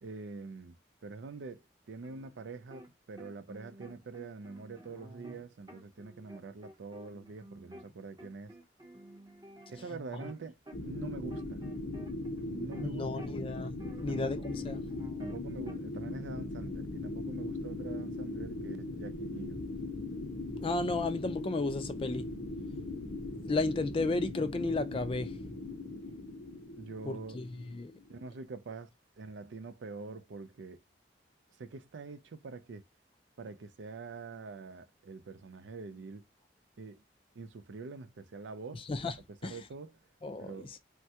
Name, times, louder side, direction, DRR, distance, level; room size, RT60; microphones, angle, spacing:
voice 1, 0.0-0.8 1.0-1.6 1.9-8.5 9.7-11.6 12.4-13.3 14.0-14.7 15.2-19.6 26.8-27.4 28.1-28.9 29.2-30.8 31.6-32.8 33.4-36.2 36.8-37.0 37.3-38.9 39.3-40.0 40.4-40.8, right 4 dB, 90° right, 0.5 m, -45 dB
sound 1, 2.0-2.9 3.2-7.9 8.2-12.9 13.2-15.8, right 1 dB, 20° right, 0.6 m, -52 dB
sound 2, 10.7-28.3, left 2 dB, 75° left, 0.7 m, -39 dB
voice 2, 12.8-14.8 20.6-22.3 23.4-25.3 27.1-27.9 38.9-39.2 39.4-39.6 40.2-40.7, left 3 dB, 30° left, 0.3 m, -33 dB
3.2 x 2.2 x 2.8 m
head